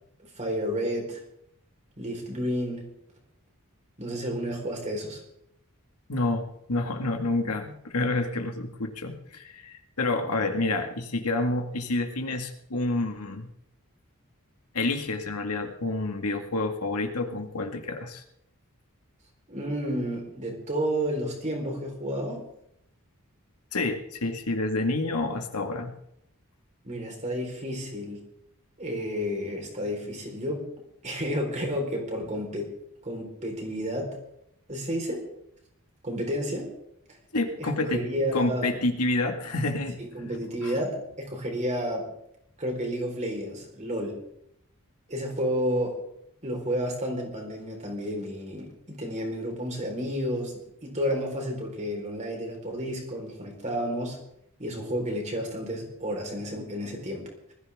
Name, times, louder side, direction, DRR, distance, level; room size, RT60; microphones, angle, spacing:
voice 1, 0.4-1.2 2.0-2.9 4.0-5.2 19.5-22.5 26.8-28.2 28.8-30.6 31.0-32.7 33.0-34.1 34.7-35.2 36.0-36.7 37.6-38.7 40.0-42.1 42.6-44.2 45.1-46.0 46.4-54.2 54.6-57.5, equal, 30° right, 1 dB, 4.4 m, -31 dB
voice 2, 6.1-13.5 14.7-18.2 23.7-26.0 37.3-38.0 38.3-40.0 40.6-40.7, left 2 dB, 85° left, 4 dB, 2.0 m, -28 dB
20.5 x 14.5 x 3.7 m, 0.76 s
head